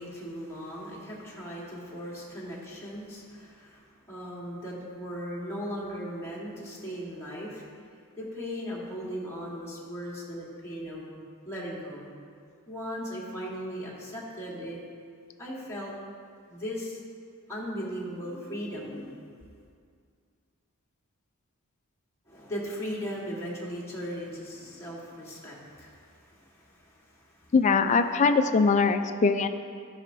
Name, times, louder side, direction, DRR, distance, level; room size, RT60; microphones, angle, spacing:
voice 1, 0.0-7.7 8.2-11.1 11.4-12.1 12.7-14.8 15.4-15.9 16.5-17.0 17.5-19.2 22.3-27.5, equal, 10° left, -6 dB, 1.4 m, -38 dB
voice 2, 27.5-29.5, left 4 dB, 35° left, 9 dB, 0.3 m, -22 dB
13.0 x 5.6 x 2.6 m, 2.2 s
head